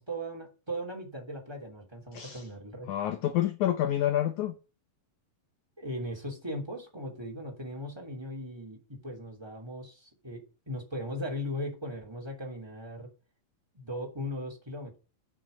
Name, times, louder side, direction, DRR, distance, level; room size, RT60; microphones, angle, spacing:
voice 1, 0.0-2.9 5.8-13.1 13.7-15.0, equal, 10° right, 2.3 m, -38 dB
voice 2, 2.1-2.5 2.9-4.5, left 12 dB, 80° left, 1.7 m, -28 dB
8.8 x 6.4 x 7.0 m
omnidirectional pair, 4.2 m